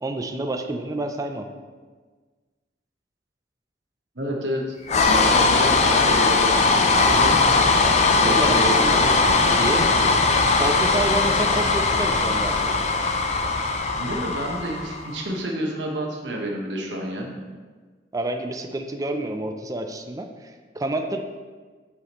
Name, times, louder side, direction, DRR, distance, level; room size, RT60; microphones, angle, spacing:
voice 1, 0.0-1.5 8.1-9.2 9.5-9.8 10.6-12.8 18.1-21.2, right 2 dB, 20° right, 5 dB, 0.4 m, -29 dB
voice 2, 4.1-4.7 5.1-7.4 8.2-9.1 9.6-10.0 14.0-17.3, right 1 dB, 80° right, 0 dB, 1.2 m, -29 dB
sound 1, 4.9-15.2, left 3 dB, 40° left, 0.5 m, -19 dB
8.1 x 5.0 x 3.0 m, 1.4 s
head